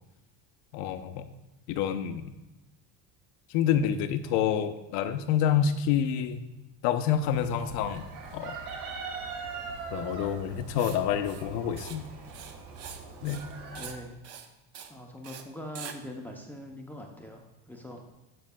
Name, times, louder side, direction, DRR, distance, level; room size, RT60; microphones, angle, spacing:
voice 1, 0.7-1.3 1.7-2.3 3.5-6.4 6.8-8.6 9.9-12.1 13.2-13.5, left 9 dB, 70° left, 9 dB, 0.7 m, -28 dB
Chicken rooster, 7.2-13.9, right 4 dB, 70° right, 1.6 m, -41 dB
Writing, 10.8-11.0 11.2-11.5 11.8-12.0 12.2-13.0 13.3-13.5 13.7-14.0 14.2-14.5 14.7-14.9 15.2-15.4 15.8-16.0, right 8 dB, 40° right, 0.6 m, -43 dB
voice 2, 13.8-14.2 14.9-18.0, left 1 dB, 5° left, 1 dB, 0.5 m, -42 dB
14.0 x 5.1 x 2.2 m, 1.0 s
cardioid pair, 145°, 40 cm